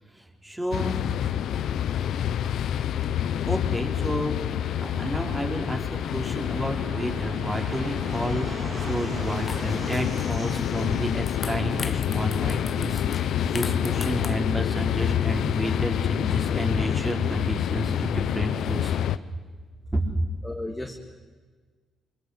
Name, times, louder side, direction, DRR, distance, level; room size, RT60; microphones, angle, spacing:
voice 1, 0.2-1.0 3.5-4.3 4.6-19.0 19.9-20.1, right 1 dB, 15° right, 2 dB, 4.8 m, -31 dB
sound 1, 0.7-19.2, left 10 dB, 75° left, 0.9 m, -27 dB
Fixed-wing aircraft airplane, 4.7-12.3, right 3 dB, 45° right, 4.1 m, -41 dB
sound 2, 9.2-9.3 9.4-10.6 11.0-14.7, left 5 dB, 35° left, 1.1 m, -40 dB
voice 2, 20.4-20.9, left 1 dB, 5° left, 0 dB, 2.7 m, -35 dB
27.5 x 25.0 x 8.2 m, 1.5 s
cardioid pair, 90°, 0 cm